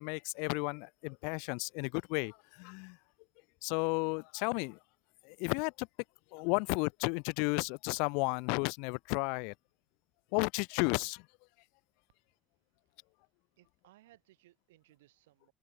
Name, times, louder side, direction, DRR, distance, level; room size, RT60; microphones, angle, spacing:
voice 1, 0.0-3.0 3.6-4.8 5.2-5.9 6.3-9.5 10.3-11.3, left 37 dB, 75° left, 0.4 m, -33 dB
voice 2, 13.6-15.5, right 17 dB, 85° right, 4.4 m, -64 dB
open air
hypercardioid pair, 60°, 0 cm